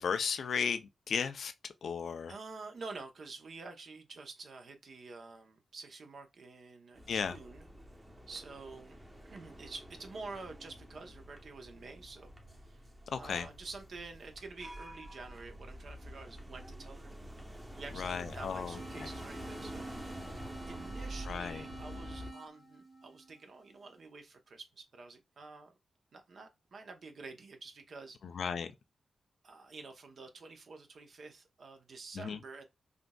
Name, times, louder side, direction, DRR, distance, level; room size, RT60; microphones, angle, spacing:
voice 1, 0.0-1.5 1.8-2.3 7.1-7.3 13.1-13.5 17.9-19.1 21.3-21.6 28.3-28.7 32.2-32.4, left 6 dB, 70° left, 0.3 m, -35 dB
voice 2, 2.3-7.7 8.3-9.0 9.2-12.8 13.2-17.1 17.7-19.9 20.7-25.7 26.1-28.2 29.4-32.6, right 3 dB, 65° right, 0.7 m, -48 dB
sound 1, 6.9-22.3, right 1 dB, 15° right, 0.9 m, -48 dB
sound 2, 18.7-23.8, right 2 dB, 30° right, 1.4 m, -49 dB
3.6 x 2.5 x 2.2 m
cardioid pair, 55°, 0 cm